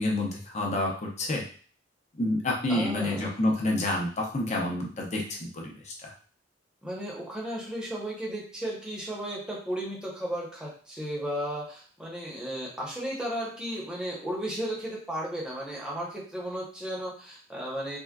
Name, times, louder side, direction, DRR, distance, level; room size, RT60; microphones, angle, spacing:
voice 1, 0.0-1.4 2.1-6.1, left 1 dB, 35° left, -1 dB, 0.7 m, -29 dB
voice 2, 2.7-3.4 6.8-18.0, equal, 5° right, -5 dB, 0.8 m, -34 dB
3.6 x 2.2 x 2.3 m, 0.44 s
head